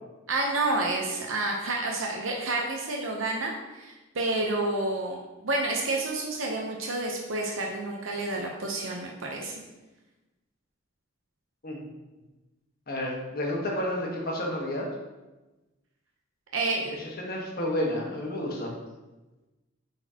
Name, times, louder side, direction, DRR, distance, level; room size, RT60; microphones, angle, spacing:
voice 1, 0.3-5.2 5.4-9.5 16.5-16.9, right 2 dB, 70° right, 0 dB, 0.8 m, -29 dB
voice 2, 12.9-14.9 17.2-18.7, left 1 dB, 50° left, -2 dB, 1.4 m, -30 dB
8.5 x 4.2 x 2.9 m, 1.1 s
head